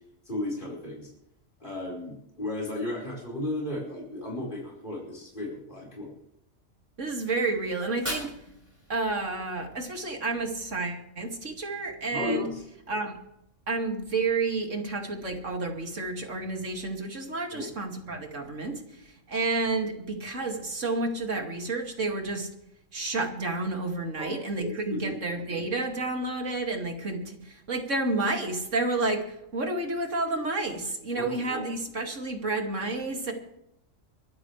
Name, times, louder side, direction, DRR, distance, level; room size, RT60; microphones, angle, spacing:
voice 1, 0.2-1.1 1.6-6.1 12.1-12.6 17.5-17.7 24.2-25.2 31.2-31.6, left 1 dB, 40° left, -4 dB, 5.2 m, -34 dB
voice 2, 7.0-8.5 8.9-12.5 12.9-13.2 13.7-22.5 22.9-33.3, right 3 dB, 75° right, 2 dB, 2.8 m, -30 dB
Fire, 7.7-9.8, equal, 10° right, 5.7 m, -40 dB
24.0 x 13.0 x 3.3 m, 0.78 s
omnidirectional pair, 1.3 m